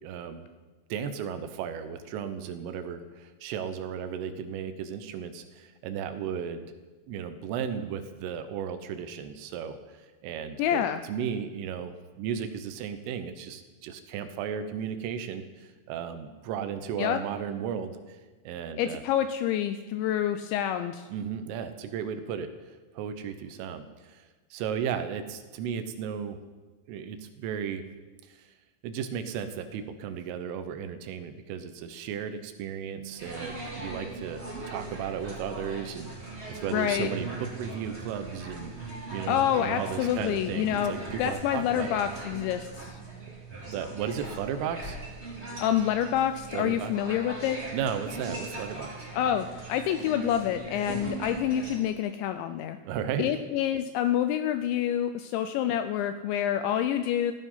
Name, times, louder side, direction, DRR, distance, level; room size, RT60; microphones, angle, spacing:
voice 1, 0.0-0.5 0.9-6.7 7.1-10.0 10.2-18.2 18.5-19.0 21.1-22.5 23.0-26.4 26.9-27.8 28.3-28.5 28.8-36.1 36.5-38.7 39.1-42.0 43.6-45.0 46.5-46.9 47.7-49.1 50.9-51.0 52.8-53.3, right 7 dB, 80° right, 9 dB, 3.5 m, -35 dB
voice 2, 10.6-11.0 17.0-17.2 18.8-21.1 36.7-37.1 39.3-43.0 45.6-47.6 49.1-52.8 53.2-57.3, left 10 dB, 85° left, 9 dB, 2.7 m, -27 dB
sound 1, 33.2-51.8, right 2 dB, 15° right, 3.4 m, -40 dB
15.5 x 14.5 x 5.6 m, 1.3 s
omnidirectional pair, 5.8 m